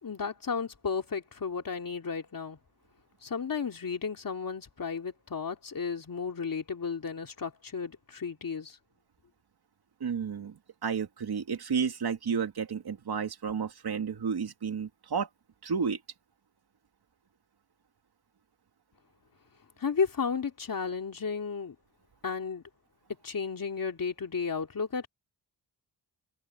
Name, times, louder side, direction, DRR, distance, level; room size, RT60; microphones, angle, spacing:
voice 1, 0.0-2.6 3.2-8.8 19.8-21.7 22.2-22.6 23.2-25.1, left 5 dB, 55° left, 3.0 m, -33 dB
voice 2, 10.0-15.3 15.6-16.0, right 6 dB, 65° right, 2.5 m, -32 dB
cardioid pair, 80°, 40 cm